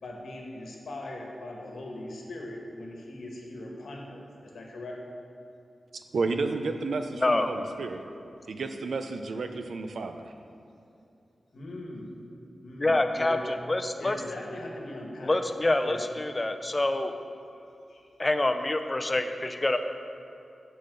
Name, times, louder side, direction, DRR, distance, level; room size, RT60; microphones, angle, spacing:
voice 1, 0.0-5.1 7.6-7.8 11.5-12.2 12.6-13.5 14.0-16.1 16.8-17.0 17.5-18.1 19.2-19.8, left 1 dB, 90° left, 0 dB, 1.4 m, -41 dB
voice 2, 6.1-8.0 8.5-10.3, right 3 dB, 90° right, 7 dB, 0.6 m, -31 dB
voice 3, 7.2-7.5 12.8-13.4 13.7-14.2 15.2-17.1 18.2-19.8, left 2 dB, 25° left, 7 dB, 0.5 m, -26 dB
7.4 x 5.7 x 6.7 m, 2.7 s
wide cardioid pair, 105°, 0 cm